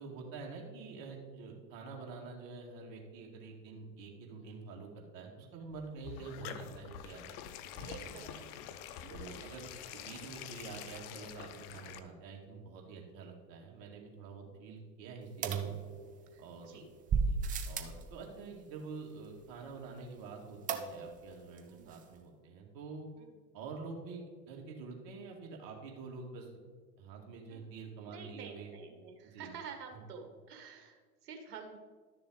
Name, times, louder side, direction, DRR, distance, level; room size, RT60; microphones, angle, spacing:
voice 1, 0.0-7.2 7.8-8.5 9.1-15.7 16.4-16.8 17.3-17.4 17.6-23.1 23.5-26.5 27.0-28.7 29.2-29.5, right 4 dB, 45° right, 0 dB, 2.2 m, -47 dB
sound 1, 5.7-12.0, left 9 dB, 25° left, 0.4 m, -47 dB
voice 2, 7.8-8.3 9.0-9.4 14.4-14.5 16.3-16.9 21.7-21.9 23.2-23.4 27.5-27.8 28.1-31.8, right 6 dB, 65° right, 4 dB, 1.8 m, -50 dB
sound 2, 15.4-16.4 17.1-18.0 20.7-21.3 21.6-21.7 21.9-22.0, right 5 dB, 15° right, 0.6 m, -34 dB
12.0 x 6.7 x 4.0 m, 1.5 s
figure-of-eight pair, 90°, 50 cm